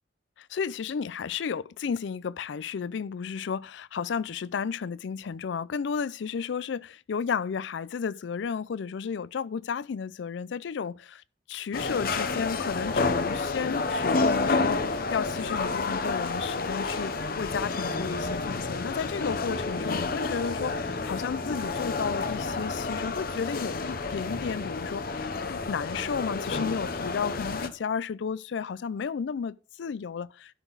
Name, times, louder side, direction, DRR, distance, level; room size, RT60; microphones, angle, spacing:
voice 1, 0.4-11.2 11.5-30.6, left 6 dB, 70° left, 0.4 m, -33 dB
sound 1, 11.7-27.7, left 3 dB, 50° left, 0.8 m, -30 dB
12.0 x 6.0 x 3.9 m
head